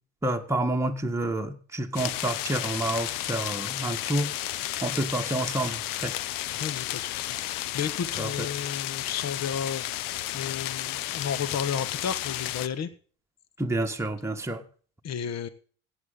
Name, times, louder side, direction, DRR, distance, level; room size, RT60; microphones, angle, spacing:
voice 1, 0.2-4.3 4.8-6.1 8.2-8.5 13.6-14.6, right 1 dB, 5° right, 3 dB, 1.5 m, -29 dB
sound 1, 1.9-12.7, left 14 dB, 60° left, 0.9 m, -33 dB
voice 2, 6.5-12.9 15.0-15.5, left 7 dB, 45° left, 14 dB, 1.3 m, -33 dB
16.0 x 9.2 x 3.8 m, 0.42 s
hypercardioid pair, 70°, 38 cm